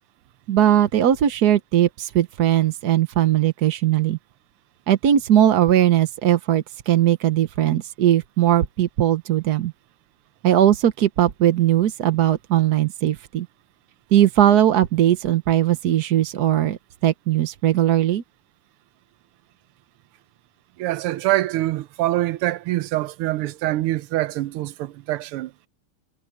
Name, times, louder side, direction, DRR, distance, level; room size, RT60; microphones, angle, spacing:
voice 1, 0.5-4.2 4.9-9.7 10.4-13.5 14.1-18.2, right 11 dB, 60° right, 1.2 m, -19 dB
voice 2, 20.8-25.5, right 16 dB, 85° right, 1.6 m, -24 dB
omnidirectional pair, 2.4 m